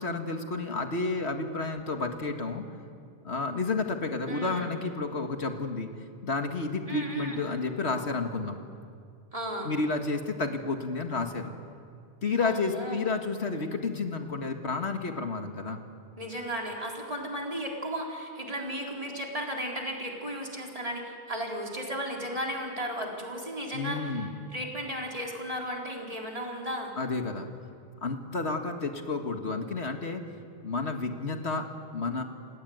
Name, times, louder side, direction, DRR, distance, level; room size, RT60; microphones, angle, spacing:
voice 1, 0.0-2.6 3.2-5.9 6.2-8.6 9.7-11.5 12.2-15.8 23.7-24.3 27.0-27.5 28.0-30.3 30.6-32.2, left 3 dB, 85° left, 5 dB, 2.1 m, -31 dB
voice 2, 4.3-4.7 6.9-7.4 9.3-9.7 12.4-13.0 16.2-24.3 24.5-26.9, equal, 35° right, -1 dB, 4.0 m, -35 dB
28.5 x 19.0 x 9.4 m, 2.3 s
omnidirectional pair, 1.1 m